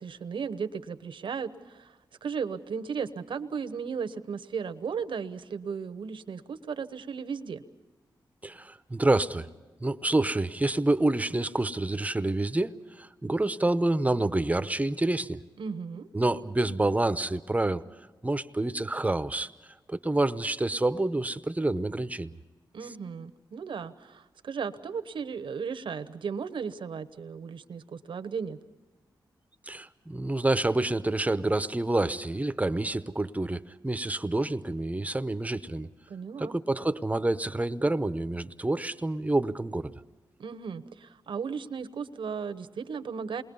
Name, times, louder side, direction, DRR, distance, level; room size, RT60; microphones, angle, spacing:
voice 1, 0.0-7.6 15.6-16.1 22.7-28.6 36.1-36.5 40.4-43.4, right 6 dB, 75° right, 11 dB, 1.0 m, -35 dB
voice 2, 8.4-9.5 9.8-15.4 16.1-17.8 18.2-19.5 19.9-22.3 29.7-35.9 36.4-39.9, right 2 dB, 15° right, 12 dB, 0.8 m, -28 dB
28.5 x 21.5 x 5.5 m, 1.3 s
cardioid pair, 75°, 8 cm